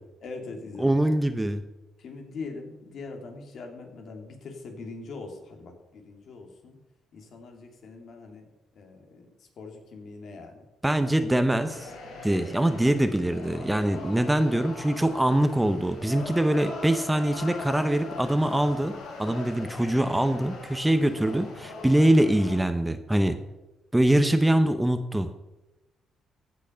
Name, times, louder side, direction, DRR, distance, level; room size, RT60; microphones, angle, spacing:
voice 1, 0.2-1.0 2.0-6.8 7.1-8.5 8.7-10.7 11.1-11.4, left 3 dB, 65° left, 3 dB, 2.6 m, -42 dB
voice 2, 0.8-1.6 10.8-11.9 12.2-18.9 19.2-23.4 23.9-25.3, right 1 dB, 10° right, 9 dB, 0.9 m, -23 dB
sound 1, 11.7-22.6, left 3 dB, 80° left, 3.5 m, -41 dB
15.5 x 6.2 x 5.7 m, 0.99 s
cardioid pair, 90°, 0 cm